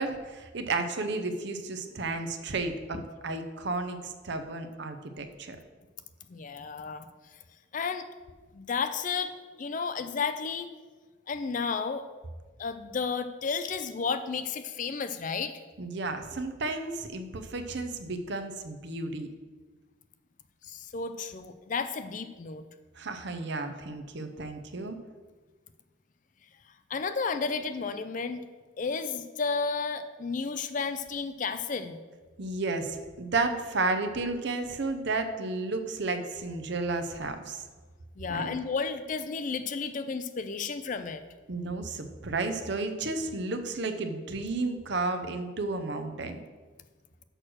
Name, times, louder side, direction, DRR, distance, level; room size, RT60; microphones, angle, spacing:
voice 1, 0.0-5.6 15.8-19.3 23.0-25.0 32.4-37.6 38.3-38.5 41.5-46.4, right 3 dB, 55° right, 7 dB, 0.7 m, -32 dB
voice 2, 6.3-7.1 7.7-8.1 8.5-9.3 9.6-10.7 11.3-12.0 12.6-15.6 20.6-22.6 26.9-28.4 28.8-32.0 38.2-41.2, left 5 dB, 40° left, 10 dB, 0.4 m, -32 dB
6.5 x 6.2 x 6.2 m, 1.4 s
head